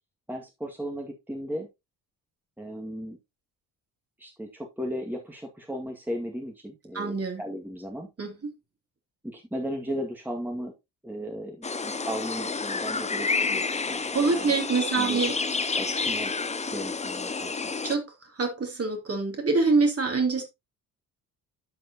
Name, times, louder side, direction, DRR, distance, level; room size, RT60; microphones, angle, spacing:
voice 1, 0.3-1.7 2.6-3.2 4.2-8.1 9.2-10.7 11.0-14.6 14.9-15.2 15.8-16.3 16.7-17.7, equal, 5° right, 2.1 m, -36 dB
voice 2, 6.9-7.4 8.2-8.5 14.1-15.4 17.8-20.4, right 4 dB, 30° right, 2.9 m, -25 dB
sound 1, 11.6-18.0, left 4 dB, 15° left, 0.8 m, -29 dB
9.8 x 7.5 x 2.9 m
figure-of-eight pair, 45°, 49 cm